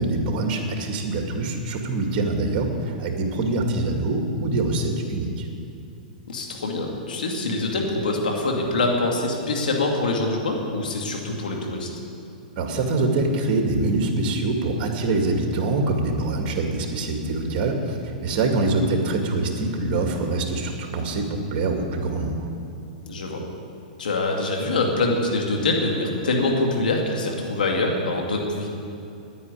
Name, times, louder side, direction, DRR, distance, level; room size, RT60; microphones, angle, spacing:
voice 1, 0.0-5.3 12.6-22.5, right 2 dB, 40° right, 2 dB, 2.3 m, -24 dB
voice 2, 6.3-11.9 18.7-18.8 23.1-23.4 24.0-28.7, left 2 dB, 90° left, 1 dB, 2.4 m, -24 dB
10.0 x 9.6 x 9.7 m, 2.6 s
hypercardioid pair, 135°, 5 cm